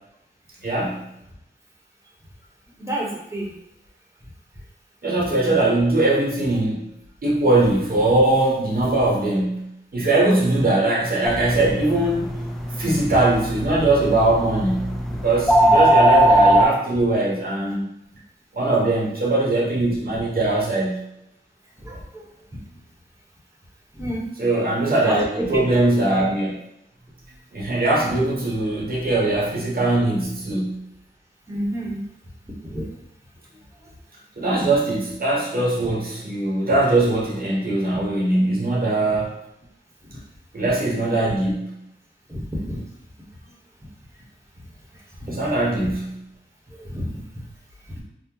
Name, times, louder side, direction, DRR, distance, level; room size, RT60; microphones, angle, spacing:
voice 1, 0.6-1.0 5.0-6.8 7.2-9.7 9.9-12.3 12.8-17.8 18.5-21.0 24.4-26.6 27.5-30.8 34.4-39.3 40.5-41.7 45.3-46.1, right 2 dB, 50° right, -4 dB, 0.9 m, -21 dB
voice 2, 2.8-3.5 18.6-19.2 21.8-22.2 23.9-24.2 25.0-25.6 31.5-32.0 32.5-32.9 33.8-33.9 35.8-35.9 40.1-40.2 42.3-42.8 45.2-45.4 46.7-47.1, right 1 dB, 15° right, -4 dB, 0.9 m, -30 dB
sound 1, 11.2-16.6, right 1 dB, ahead, 0.3 m, -20 dB
2.8 x 2.0 x 3.7 m, 0.80 s
wide cardioid pair, 80°, 20 cm